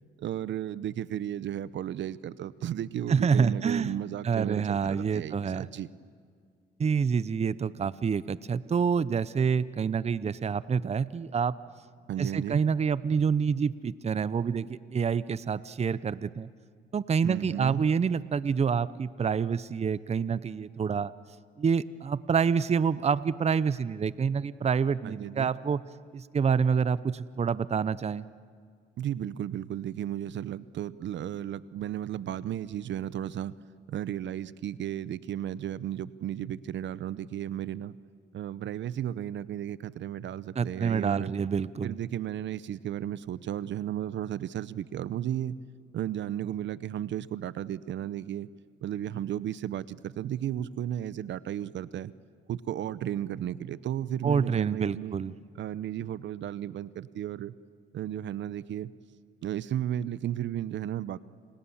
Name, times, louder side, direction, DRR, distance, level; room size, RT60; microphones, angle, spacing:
voice 1, 0.2-5.9 12.1-12.6 17.2-17.9 25.0-25.5 29.0-33.5 33.9-38.0 38.3-41.3 41.8-45.6 45.9-48.5 48.8-52.1 52.5-55.2 55.6-57.5 57.9-58.9 59.4-61.2, right 11 dB, 70° right, 18 dB, 0.8 m, -34 dB
voice 2, 3.1-3.9 4.2-5.7 6.8-11.6 12.2-16.5 16.9-21.1 21.6-25.8 26.1-28.2 40.6-42.0 54.2-55.3, right 6 dB, 35° right, 17 dB, 0.7 m, -27 dB
30.0 x 27.5 x 7.2 m, 2.1 s
cardioid pair, 90°, 20 cm